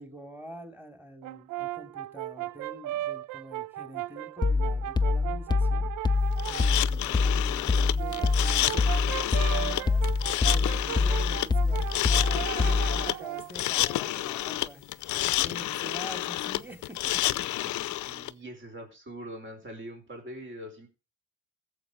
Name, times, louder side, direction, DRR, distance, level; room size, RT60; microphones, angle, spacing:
voice 1, 0.0-10.1 10.4-11.8 12.1-14.8 15.1-17.9, right 1 dB, 5° right, 6 dB, 2.8 m, -46 dB
Brass instrument, 1.2-6.8 7.7-13.6, right 14 dB, 85° right, 0.5 m, -37 dB
sound 1, 4.4-13.1, left 4 dB, 15° left, 0.5 m, -26 dB
sound 2, 6.4-18.3, left 15 dB, 75° left, 0.6 m, -30 dB
voice 2, 18.0-20.9, right 1 dB, 40° right, 2 dB, 4.6 m, -42 dB
15.5 x 7.4 x 5.2 m, 0.32 s
cardioid pair, 90°, 30 cm